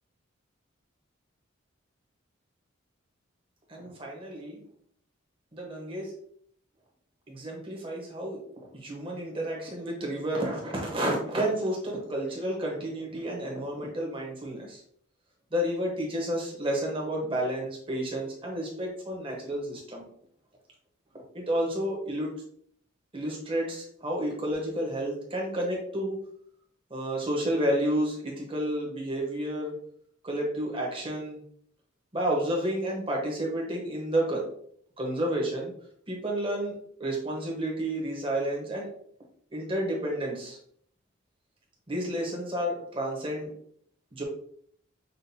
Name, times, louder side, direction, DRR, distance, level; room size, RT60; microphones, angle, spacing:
voice 1, 3.7-4.6 5.5-6.1 7.3-8.4 8.7-14.8 15.5-20.0 21.3-22.3 23.1-26.2 26.9-29.7 30.2-31.4 32.1-34.5 35.0-35.7 36.1-36.7 37.0-38.9 39.5-40.6 41.9-43.5 44.1-44.2, right 1 dB, 25° right, -1 dB, 1.0 m, -30 dB
5.6 x 2.6 x 2.7 m, 0.64 s
head